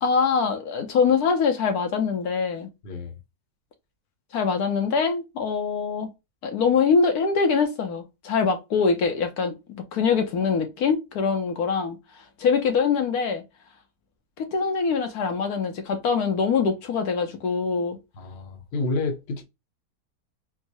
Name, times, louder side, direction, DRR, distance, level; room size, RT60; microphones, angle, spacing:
voice 1, 0.0-2.7 4.3-6.1 6.4-12.0 12.4-13.4 14.4-18.0, left 5 dB, 70° left, 1.2 m, -23 dB
voice 2, 2.8-3.2 18.1-19.4, left 3 dB, 50° left, 0.8 m, -29 dB
4.5 x 2.0 x 2.7 m
omnidirectional pair, 1.7 m